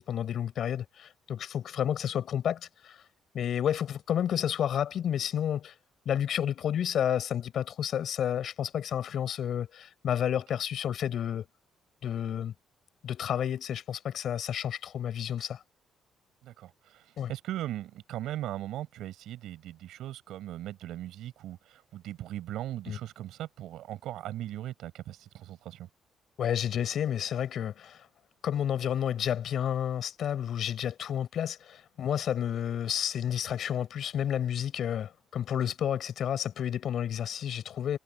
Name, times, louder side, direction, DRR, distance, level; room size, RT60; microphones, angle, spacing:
voice 1, 0.0-3.0 3.3-5.7 6.0-11.5 12.0-12.5 13.0-15.6 17.2-17.3 22.9-23.0 26.4-28.1 28.4-38.0, left 9 dB, 60° left, 7.8 m, -31 dB
voice 2, 16.4-25.9, right 13 dB, 85° right, 7.9 m, -39 dB
cardioid pair, 140°, 0 cm